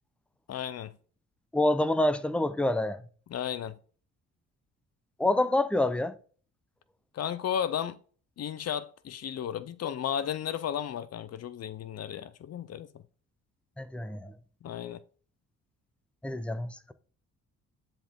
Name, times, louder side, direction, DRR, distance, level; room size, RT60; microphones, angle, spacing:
voice 1, 0.5-0.9 3.3-3.8 7.1-8.0 8.4-12.9 14.6-15.0, left 9 dB, 55° left, 0.7 m, -34 dB
voice 2, 1.5-3.0 5.2-6.1 13.8-14.3 16.2-16.9, left 1 dB, 5° left, 0.8 m, -27 dB
10.5 x 4.4 x 3.7 m
cardioid pair, 90°, 30 cm